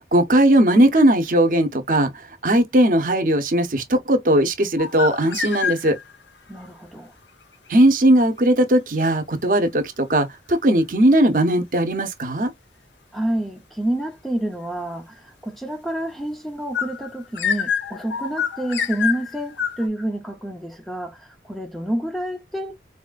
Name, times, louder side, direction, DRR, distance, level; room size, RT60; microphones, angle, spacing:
voice 1, 0.1-2.1 2.4-6.0 7.7-12.5, right 1 dB, 50° right, 0.7 m, -18 dB
sound 1, 4.8-6.2 16.7-19.9, left 7 dB, 85° left, 0.9 m, -26 dB
voice 2, 6.5-7.1 13.1-22.7, right 1 dB, ahead, 0.5 m, -28 dB
4.2 x 2.3 x 2.4 m
head